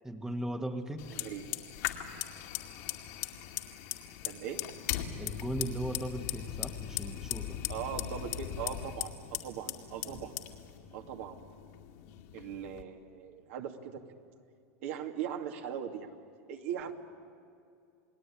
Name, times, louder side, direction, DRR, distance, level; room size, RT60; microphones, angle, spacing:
voice 1, 0.0-1.1 5.2-7.6, right 1 dB, 5° right, 7 dB, 1.3 m, -37 dB
Fire, 1.0-12.8, left 12 dB, 65° left, 2.3 m, -39 dB
voice 2, 4.2-4.7 7.7-10.4 10.9-11.4 12.3-13.8 14.8-16.1 16.5-16.9, right 9 dB, 65° right, 4 dB, 2.4 m, -39 dB
29.0 x 19.0 x 10.0 m, 2.5 s
supercardioid pair, 130°, 8 cm